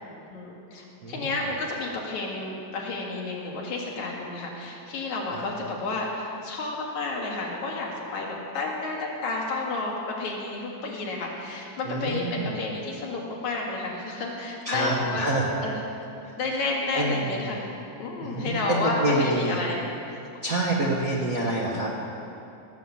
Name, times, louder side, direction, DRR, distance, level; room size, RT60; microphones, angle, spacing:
voice 1, 0.3-15.3 15.6-15.8 16.4-17.7 18.0-20.2, left 3 dB, 65° left, -2 dB, 3.3 m, -31 dB
voice 2, 1.0-1.4 5.3-5.5 11.8-12.6 14.6-15.5 16.2-16.3 16.9-17.5 18.2-19.6 20.4-22.0, right 1 dB, 55° right, -4 dB, 0.9 m, -27 dB
18.0 x 7.6 x 7.1 m, 2.7 s
omnidirectional pair, 3.6 m